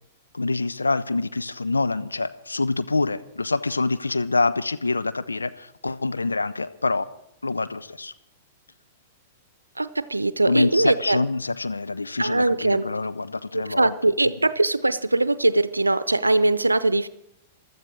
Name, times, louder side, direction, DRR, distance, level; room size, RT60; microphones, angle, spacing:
voice 1, 0.3-7.0 7.4-8.1 10.5-13.9 14.2-14.3, left 3 dB, 85° left, 11 dB, 0.9 m, -26 dB
voice 2, 9.8-11.2 12.2-12.9 13.5-17.1, right 2 dB, 85° right, 16 dB, 0.6 m, -21 dB
15.5 x 12.5 x 6.3 m, 0.78 s
figure-of-eight pair, 105°, 0 cm